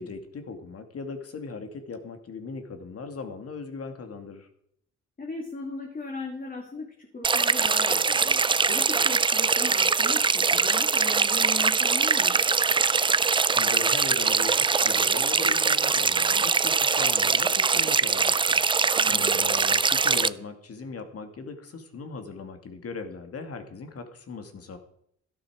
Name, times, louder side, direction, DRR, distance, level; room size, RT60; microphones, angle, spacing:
voice 1, 0.0-4.5 13.6-24.8, left 4 dB, 50° left, 7 dB, 2.4 m, -39 dB
voice 2, 5.2-12.4 19.0-19.3, left 3 dB, 30° left, 0 dB, 3.2 m, -38 dB
sound 1, 7.2-20.3, right 5 dB, 15° right, 0.4 m, -22 dB
13.0 x 11.5 x 5.0 m, 0.70 s
cardioid pair, 90°, 30 cm